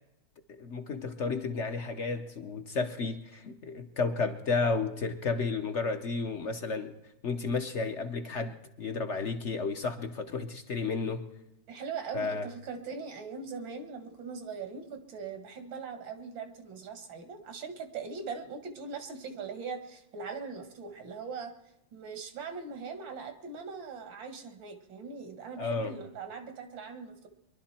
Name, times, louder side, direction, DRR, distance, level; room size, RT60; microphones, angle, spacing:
voice 1, 0.5-6.9 7.2-11.2 12.1-12.5 25.6-25.9, left 4 dB, 50° left, 7 dB, 0.9 m, -32 dB
voice 2, 11.7-21.5 21.9-27.3, right 5 dB, 85° right, 7 dB, 2.4 m, -41 dB
23.5 x 11.5 x 4.3 m, 0.86 s
omnidirectional pair, 2.0 m